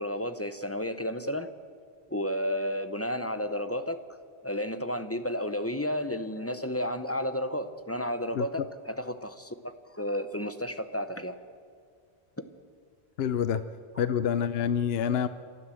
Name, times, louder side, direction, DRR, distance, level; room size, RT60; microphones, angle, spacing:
voice 1, 0.0-1.5 2.1-4.0 4.4-11.4 13.9-14.1, equal, 15° left, 10 dB, 0.7 m, -32 dB
voice 2, 13.2-13.6 14.0-15.3, left 8 dB, 70° left, 13 dB, 0.9 m, -27 dB
28.5 x 12.5 x 7.7 m, 2.1 s
omnidirectional pair, 1.1 m